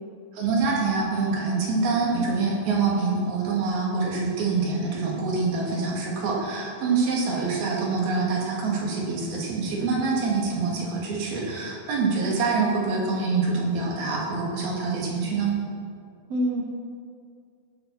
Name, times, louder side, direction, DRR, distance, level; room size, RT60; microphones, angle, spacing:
voice 1, 0.3-15.5, right 4 dB, 70° right, -3 dB, 4.0 m, -25 dB
voice 2, 9.8-10.2 16.3-16.6, right 1 dB, 55° right, 0 dB, 2.1 m, -27 dB
18.0 x 7.3 x 5.9 m, 2.2 s
omnidirectional pair, 4.6 m